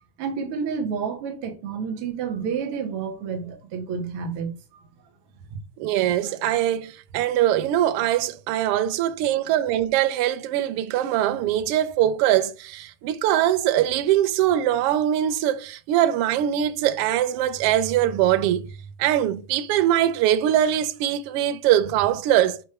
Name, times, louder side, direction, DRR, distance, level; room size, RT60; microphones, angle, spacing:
voice 1, 0.2-4.8, right 6 dB, 55° right, 1.9 m, -30 dB
voice 2, 5.5-18.7 19.0-22.6, right 12 dB, 85° right, 1.3 m, -22 dB
6.5 x 3.1 x 5.7 m
omnidirectional pair, 3.3 m